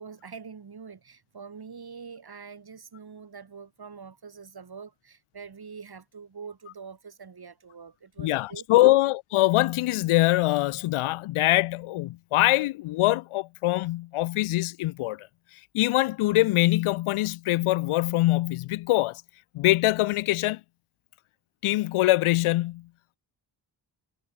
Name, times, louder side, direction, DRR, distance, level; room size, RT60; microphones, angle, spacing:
voice 1, 0.0-9.0, right 5 dB, 50° right, 5.7 m, -44 dB
voice 2, 8.2-15.3 15.7-19.2 19.5-20.6 21.6-22.9, left 17 dB, 80° left, 0.6 m, -23 dB
cardioid pair, 65°, 49 cm